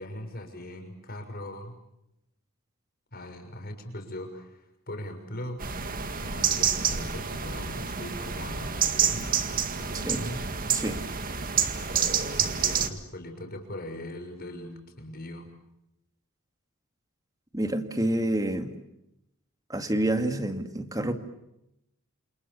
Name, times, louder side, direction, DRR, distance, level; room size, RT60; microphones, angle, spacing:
voice 1, 0.0-1.8 3.1-5.8 6.2-9.4 9.8-10.6 12.3-15.5, left 1 dB, 45° left, 5 dB, 6.3 m, -40 dB
sound 1, 5.6-12.9, right 7 dB, 40° right, 1.9 m, -28 dB
voice 2, 10.7-11.1 17.5-18.8 19.7-21.1, right 1 dB, 15° right, 8 dB, 2.2 m, -28 dB
28.5 x 28.5 x 7.1 m, 0.85 s
head